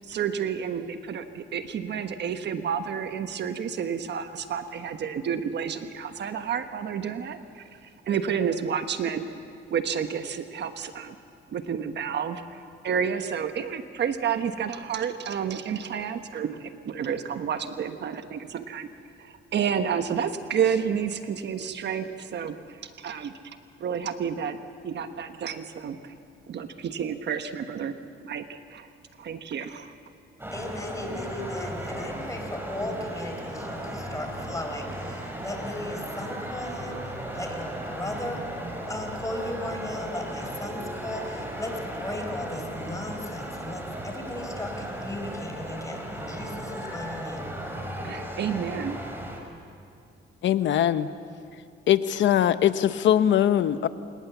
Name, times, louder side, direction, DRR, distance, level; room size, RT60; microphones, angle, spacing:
voice 1, 0.1-7.6 8.0-9.3 9.7-11.1 11.5-18.9 19.2-23.3 23.8-24.6 24.8-26.1 26.5-27.9 28.2-28.9 29.2-29.9 48.0-49.0, right 7 dB, 60° right, 8 dB, 1.2 m, -30 dB
sound 1, 30.4-49.4, equal, 10° right, 5.0 m, -36 dB
voice 2, 30.5-38.4 38.9-47.5, left 1 dB, 15° left, 4 dB, 4.4 m, -36 dB
voice 3, 50.4-51.1 51.9-53.9, left 10 dB, 70° left, 13 dB, 0.9 m, -21 dB
28.5 x 18.5 x 7.2 m, 2.4 s
cardioid pair, 90°, 20 cm